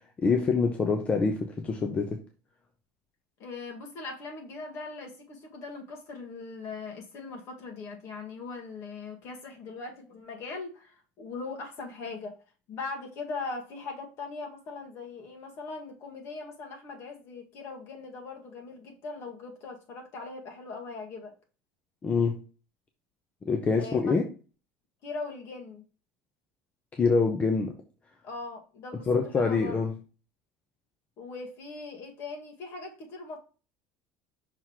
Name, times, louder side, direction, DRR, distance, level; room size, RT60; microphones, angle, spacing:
voice 1, 0.2-2.2 22.0-22.4 23.4-24.2 26.9-27.7 29.1-29.9, left 4 dB, 20° left, 4 dB, 0.8 m, -25 dB
voice 2, 3.4-12.3 12.7-21.3 23.8-24.1 25.0-25.8 28.2-29.8 31.2-33.4, left 3 dB, 50° left, 2 dB, 2.0 m, -40 dB
5.9 x 3.6 x 4.6 m, 0.35 s
cardioid pair, 150°, 6 cm